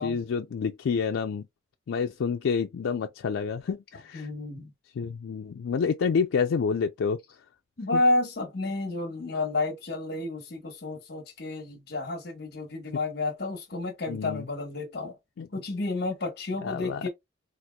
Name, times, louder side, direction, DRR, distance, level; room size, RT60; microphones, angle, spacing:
voice 1, 0.0-1.5 1.9-4.3 5.0-7.2 7.9-8.0 14.1-14.5 15.4-15.5 16.6-17.1, left 6 dB, 90° left, 0.4 m, -28 dB
voice 2, 4.1-4.7 7.8-15.2 15.5-17.1, left 2 dB, 55° left, 1.1 m, -30 dB
4.2 x 2.4 x 2.2 m
head